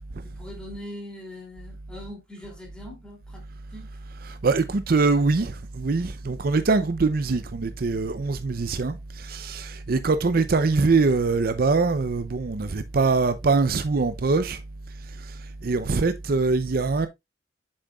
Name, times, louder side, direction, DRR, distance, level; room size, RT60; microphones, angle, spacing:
voice 1, 0.2-3.4 3.7-3.9, left 1 dB, 5° left, 2.6 m, -41 dB
voice 2, 4.2-14.6 15.2-17.1, right 4 dB, 55° right, 0.5 m, -23 dB
7.8 x 6.3 x 2.3 m
head